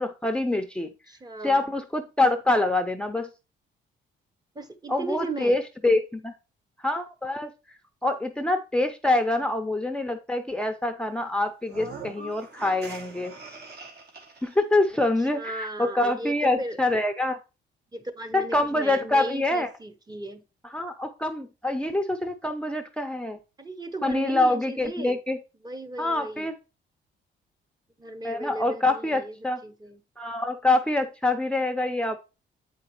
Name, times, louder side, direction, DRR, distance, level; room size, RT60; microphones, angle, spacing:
voice 1, 0.0-0.9 1.4-3.3 4.9-6.3 6.8-7.5 8.0-13.3 14.4-17.4 18.3-19.7 20.7-23.4 24.0-25.4 26.0-26.5 28.2-29.6 30.2-32.2, left 2 dB, 5° left, 0.6 m, -25 dB
voice 2, 1.1-1.7 4.5-5.6 15.2-16.8 17.9-20.4 23.6-25.2 25.6-26.5 28.0-29.4 29.6-30.0, right 2 dB, 20° right, 0.9 m, -36 dB
sound 1, 11.6-14.6, right 3 dB, 55° right, 1.5 m, -42 dB
7.9 x 4.9 x 3.0 m
cardioid pair, 90°, 20 cm